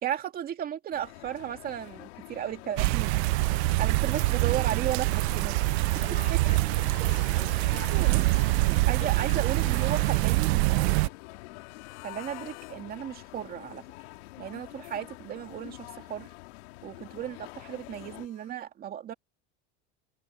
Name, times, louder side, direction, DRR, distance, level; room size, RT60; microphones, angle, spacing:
voice 1, 0.0-3.2 3.8-5.6 7.9-8.2 8.5-11.0 12.0-13.8 14.4-16.3 16.8-19.1, right 10 dB, 30° right, 2.4 m, -35 dB
sound 1, 0.9-18.3, left 22 dB, 85° left, 3.4 m, -46 dB
sound 2, 2.8-11.1, right 23 dB, 80° right, 0.5 m, -25 dB
voice 2, 4.1-4.4 5.9-8.5 9.0-9.3, left 7 dB, 20° left, 5.3 m, -48 dB
sound 3, 4.7-12.8 13.1-18.5, left 37 dB, 60° left, 4.3 m, -54 dB
cardioid pair, 165°, 32 cm